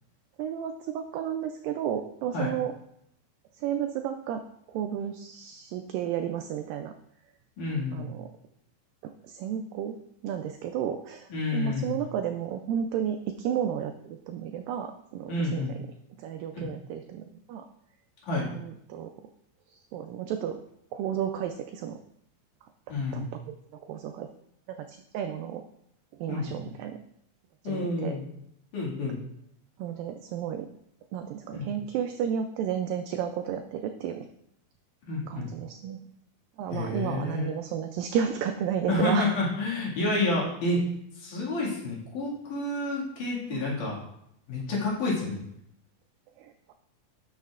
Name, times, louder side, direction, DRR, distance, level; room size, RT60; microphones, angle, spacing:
voice 1, 0.4-2.7 3.5-4.4 4.7-6.9 7.9-8.3 9.0-10.0 10.2-15.9 16.2-17.7 18.5-19.1 19.7-20.6 20.9-22.0 22.9-24.3 24.7-25.6 26.1-27.0 27.6-28.2 29.8-30.7 31.1-34.3 35.2-36.0 36.6-39.4 43.5-43.7 46.4-46.7, right 9 dB, 85° right, 6 dB, 2.0 m, -32 dB
voice 2, 7.6-8.1 11.3-12.0 15.3-15.7 16.5-16.7 18.2-18.5 22.9-23.3 26.3-26.5 27.6-28.3 28.7-29.2 31.5-31.7 35.0-35.5 36.7-37.5 38.9-40.8 41.2-44.0 44.5-45.4, left 2 dB, 60° left, -5 dB, 3.4 m, -29 dB
11.5 x 6.6 x 2.4 m, 0.74 s
omnidirectional pair, 4.4 m